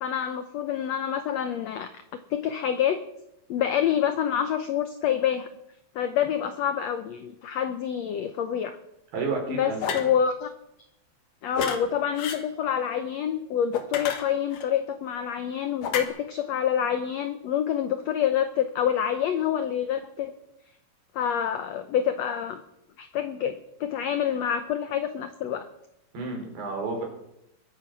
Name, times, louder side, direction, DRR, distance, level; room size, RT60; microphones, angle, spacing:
voice 1, 0.0-1.9 2.3-3.0 3.5-5.5 5.9-8.8 9.5-10.5 11.4-20.3 21.1-22.6 23.0-25.7, left 9 dB, 90° left, 10 dB, 1.5 m, -27 dB
voice 2, 9.1-9.8 26.1-27.0, right 4 dB, 85° right, 1 dB, 5.9 m, -30 dB
sound 1, 9.8-10.1 11.5-11.8 12.2-12.4 13.7-14.7 15.8-16.1, left 6 dB, 70° left, 2.9 m, -30 dB
22.0 x 10.5 x 6.1 m, 0.83 s
omnidirectional pair, 4.2 m